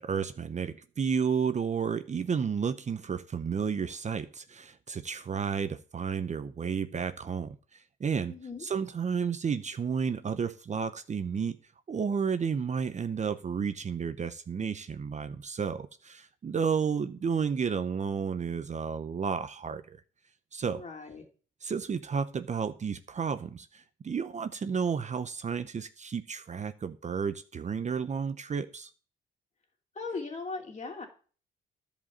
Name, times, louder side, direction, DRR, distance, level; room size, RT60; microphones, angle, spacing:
voice 1, 0.0-8.3 8.6-11.6 11.9-20.0 20.5-20.8 21.6-28.9, right 6 dB, 35° right, 0.7 m, -32 dB
voice 2, 8.3-8.7 20.6-21.2 29.9-31.1, left 4 dB, 35° left, 2.9 m, -38 dB
11.0 x 5.2 x 7.3 m
cardioid pair, 90°, 20 cm